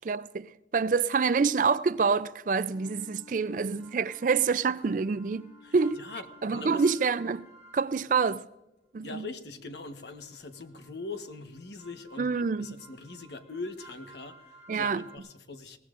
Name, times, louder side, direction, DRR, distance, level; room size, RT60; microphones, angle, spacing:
voice 1, 0.1-6.0 6.4-7.5 7.7-8.4 8.9-9.3 12.2-12.7 14.7-15.0, right 5 dB, 45° right, 0.4 m, -27 dB
sound 1, 1.8-8.2 9.8-15.2, right 3 dB, 45° left, 2.7 m, -56 dB
Wind instrument woodwind instrument, 2.6-7.1, left 5 dB, 25° left, 1.6 m, -56 dB
voice 2, 5.6-6.2 6.5-7.0 9.0-15.8, left 3 dB, 70° left, 1.2 m, -42 dB
22.5 x 18.0 x 2.5 m
head